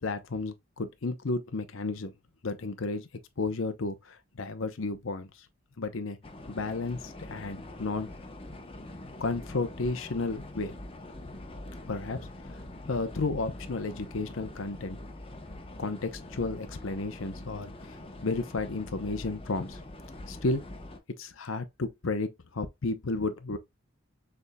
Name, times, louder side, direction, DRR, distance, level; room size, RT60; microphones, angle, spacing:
voice 1, 0.0-2.1 2.4-3.1 3.4-5.3 5.8-6.2 6.5-8.1 9.2-10.8 11.9-12.6 12.9-15.0 15.8-18.0 18.2-19.8 20.3-20.6 21.2-23.6, left 3 dB, 70° left, 0.7 m, -32 dB
sound 1, 6.2-21.0, left 1 dB, 30° left, 0.9 m, -44 dB
6.6 x 3.6 x 2.3 m
head